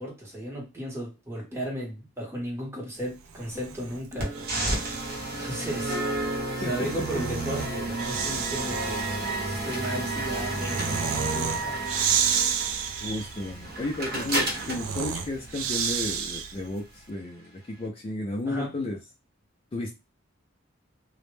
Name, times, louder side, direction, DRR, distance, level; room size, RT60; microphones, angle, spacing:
voice 1, 0.0-4.4 5.4-6.0 6.6-9.1 9.4-11.8 18.4-18.7, right 1 dB, 10° right, 0.8 m, -35 dB
Breathing, 3.3-5.2 6.5-16.7, right 7 dB, 80° right, 0.3 m, -32 dB
sound 1, 4.2-16.2, right 2 dB, 50° right, 0.8 m, -32 dB
voice 2, 13.0-19.0 19.7-19.9, left 2 dB, 25° left, 0.3 m, -33 dB
2.0 x 2.0 x 3.1 m
head